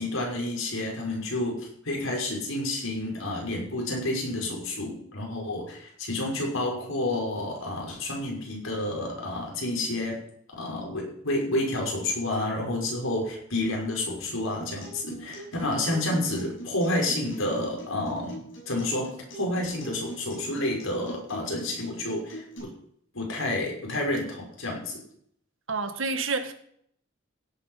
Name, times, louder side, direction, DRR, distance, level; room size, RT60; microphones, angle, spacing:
voice 1, 0.0-10.2 10.6-22.7 23.1-25.0, left 1 dB, 85° left, 6.1 m, -30 dB
Acoustic guitar, 14.6-22.6, right 1 dB, 70° left, 7.2 m, -43 dB
voice 2, 25.7-26.5, right 4 dB, 70° right, 1.7 m, -28 dB
16.5 x 9.0 x 5.8 m
head